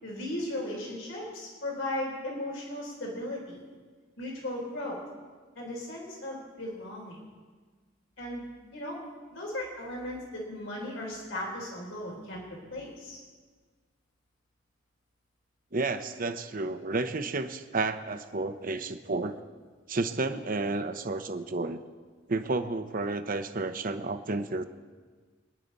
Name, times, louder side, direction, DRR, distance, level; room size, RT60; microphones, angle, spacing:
voice 1, 0.0-3.6 4.2-5.0 5.6-7.2 8.2-8.4 8.7-9.0 9.3-12.4 12.7-13.2, left 1 dB, 80° left, -2 dB, 3.8 m, -36 dB
voice 2, 15.7-19.4 19.9-21.8 22.3-24.6, right 3 dB, 45° right, 9 dB, 0.9 m, -31 dB
25.0 x 10.0 x 4.1 m, 1.4 s
head